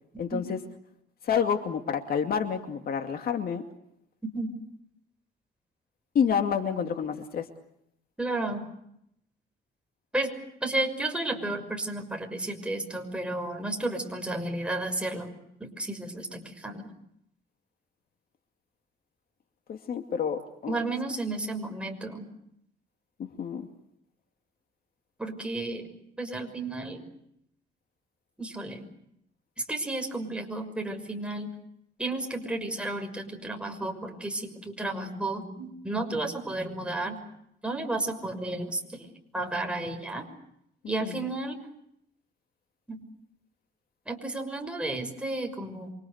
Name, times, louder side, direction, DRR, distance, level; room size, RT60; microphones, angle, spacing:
voice 1, 0.2-0.6 1.2-3.6 6.1-7.5 19.7-20.8 23.2-23.7 41.0-41.3, left 7 dB, 55° left, 6 dB, 2.5 m, -29 dB
voice 2, 8.2-8.7 10.1-10.3 10.6-15.3 15.6-16.9 20.7-22.2 25.2-25.9 26.2-27.0 28.4-28.9 29.7-31.5 32.0-37.2 37.6-39.1 39.3-40.3 40.9-41.6 42.9-43.0 44.1-45.9, right 2 dB, 5° right, 3 dB, 6.1 m, -32 dB
28.5 x 25.0 x 6.6 m, 0.76 s
cardioid pair, 130°, 18 cm